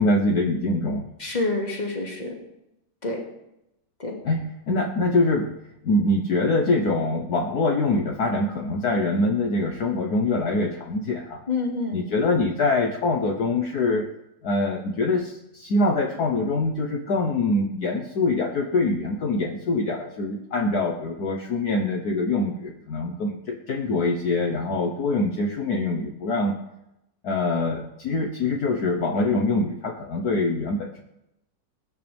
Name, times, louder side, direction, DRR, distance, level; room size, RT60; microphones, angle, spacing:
voice 1, 0.0-1.0 4.2-5.5 5.8-11.4 11.9-14.1 14.4-26.5 27.2-31.0, left 2 dB, 60° left, 2 dB, 1.5 m, -24 dB
voice 2, 1.2-2.4 3.0-3.2 4.0-4.2 11.5-12.0, left 3 dB, 25° left, 0 dB, 2.4 m, -27 dB
20.5 x 9.9 x 3.5 m, 0.85 s
omnidirectional pair, 2.0 m